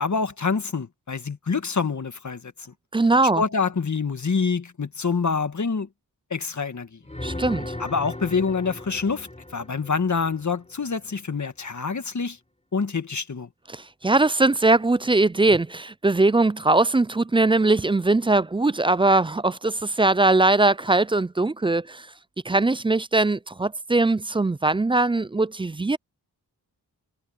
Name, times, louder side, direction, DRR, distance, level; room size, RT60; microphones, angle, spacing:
voice 1, 0.0-2.7 3.4-5.9 6.3-7.0 7.8-12.4 12.7-13.5, left 5 dB, 45° left, 1.7 m, -26 dB
voice 2, 2.9-3.4 7.2-7.7 13.7-22.1 22.5-26.0, right 2 dB, 15° right, 0.3 m, -21 dB
sound 1, 7.0-10.9 15.4-15.6, left 1 dB, 15° left, 4.4 m, -37 dB
cardioid pair, 60°, 41 cm